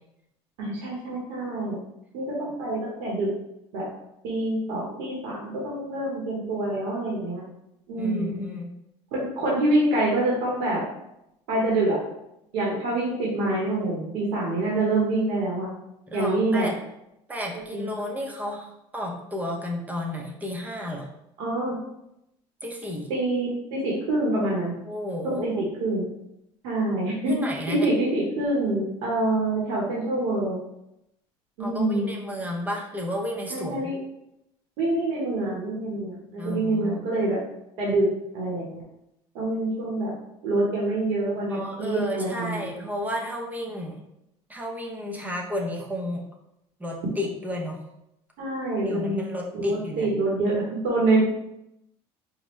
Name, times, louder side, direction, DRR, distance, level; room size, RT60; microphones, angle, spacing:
voice 1, 0.6-1.8 2.1-3.3 3.7-3.8 4.2-7.4 7.9-8.4 9.1-10.8 11.5-12.0 12.5-15.7 16.1-16.7 17.5-17.9 21.4-21.8 23.1-24.7 25.2-25.5 25.8-26.1 26.6-27.4 27.7-30.6 31.6-32.1 33.5-34.0 34.8-37.4 37.8-38.1 38.3-38.8 39.3-40.1 40.4-42.8 48.4-49.2 49.5-51.2, right 2 dB, 85° right, -5 dB, 1.1 m, -26 dB
voice 2, 8.0-8.7 16.1-16.7 17.3-21.1 22.6-23.1 24.9-25.6 27.3-27.9 31.6-33.7 36.4-37.1 41.5-44.0 44.5-46.2 46.8-47.8 48.9-50.1, left 1 dB, 15° right, -1 dB, 0.7 m, -32 dB
4.8 x 2.2 x 3.1 m, 0.84 s
cardioid pair, 125°, 12 cm